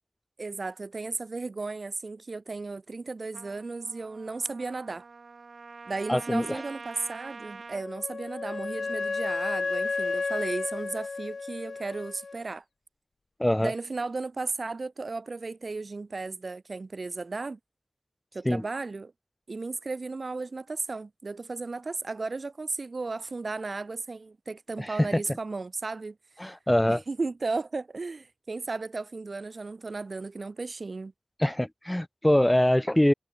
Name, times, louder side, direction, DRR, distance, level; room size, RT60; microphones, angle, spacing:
voice 1, 0.4-5.0 5.9-12.6 13.6-17.6 18.3-19.1 19.5-26.2 26.9-31.1, right 3 dB, 65° right, 1.6 m, -35 dB
Trumpet, 3.3-7.9, right 4 dB, 85° right, 1.5 m, -45 dB
voice 2, 6.1-6.6 13.4-13.7 18.5-18.6 24.8-25.1 26.4-27.0 31.4-33.1, left 1 dB, 10° left, 0.5 m, -24 dB
Wind instrument woodwind instrument, 7.7-12.4, left 4 dB, 80° left, 0.7 m, -32 dB
wide cardioid pair, 65°, 0 cm